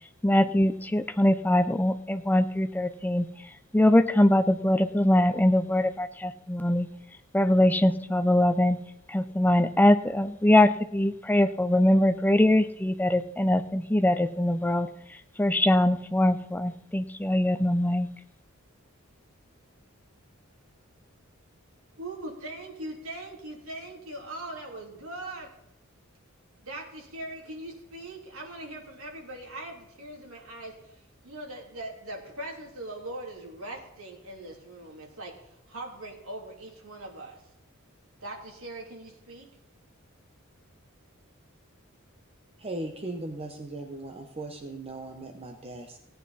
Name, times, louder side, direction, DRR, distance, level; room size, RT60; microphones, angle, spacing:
voice 1, 0.2-3.3 3.7-6.9 7.3-8.8 9.1-14.9 15.4-18.1, left 1 dB, 10° left, 11 dB, 0.5 m, -22 dB
voice 2, 21.9-25.5 26.6-37.4 38.2-39.5, right 1 dB, 75° right, 0 dB, 2.9 m, -41 dB
voice 3, 42.6-46.0, right 2 dB, 30° right, 4 dB, 1.0 m, -38 dB
17.0 x 9.3 x 4.2 m, 0.85 s
head